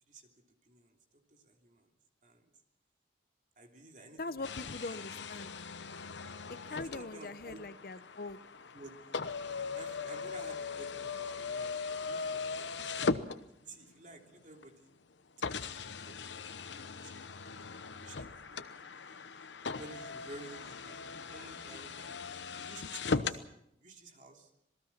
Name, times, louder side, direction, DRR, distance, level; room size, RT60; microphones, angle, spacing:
voice 1, 0.7-1.9 2.2-2.4 3.6-4.5 6.7-7.6 8.7-8.9 9.7-13.2 13.7-14.9 15.5-16.3 16.9-17.2 18.0-19.2 19.6-22.2 22.6-23.4 23.8-24.5, right 2 dB, 45° right, 3 dB, 3.0 m, -52 dB
voice 2, 4.2-5.5 6.5-8.4, left 3 dB, 55° left, 14 dB, 0.8 m, -42 dB
sound 1, 4.4-13.9 14.6-14.7 15.4-23.4, left 4 dB, 90° left, 1.0 m, -39 dB
27.0 x 19.0 x 5.8 m, 0.76 s
head